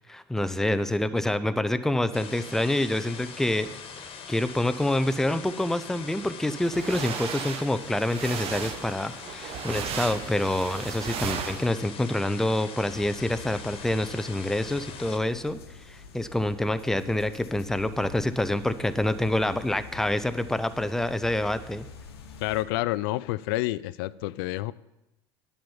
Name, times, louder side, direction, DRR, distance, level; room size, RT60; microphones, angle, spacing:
voice 1, 0.1-3.7 4.3-15.6 15.9-21.9, left 1 dB, 5° left, 12 dB, 0.6 m, -27 dB
sound 1, 2.1-15.2, left 6 dB, 40° left, 1.5 m, -42 dB
sound 2, 6.6-11.7, right 7 dB, 45° right, 1.0 m, -35 dB
sound 3, 12.9-22.6, left 5 dB, 80° left, 1.1 m, -46 dB
voice 2, 22.4-24.7, left 18 dB, 65° left, 19 dB, 0.4 m, -29 dB
10.5 x 5.6 x 7.1 m, 0.94 s
hypercardioid pair, 75°, 13 cm